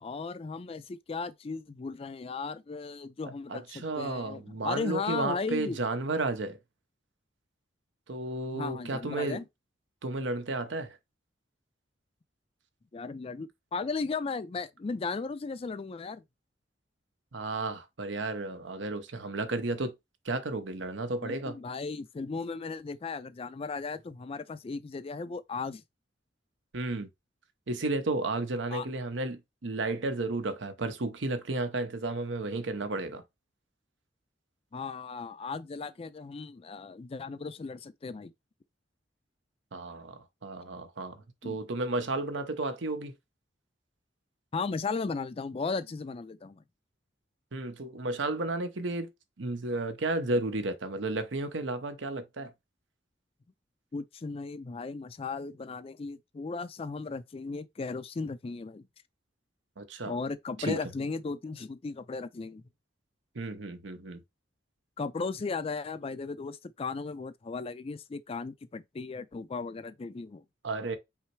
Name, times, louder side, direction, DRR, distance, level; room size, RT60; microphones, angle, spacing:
voice 1, 0.0-5.8 8.5-9.4 12.9-16.2 21.2-25.8 28.7-28.9 34.7-38.3 41.4-41.6 44.5-46.6 53.9-58.8 60.1-62.6 65.0-70.4, left 4 dB, 30° left, 0.4 m, -36 dB
voice 2, 3.5-6.6 8.1-9.4 10.0-11.0 17.3-19.9 20.2-21.6 26.7-27.1 27.7-33.2 39.7-43.1 47.5-49.1 49.4-52.5 59.8-60.2 60.6-60.8 63.3-64.2 70.6-71.0, right 2 dB, 80° right, 0.9 m, -33 dB
5.6 x 2.0 x 4.6 m
head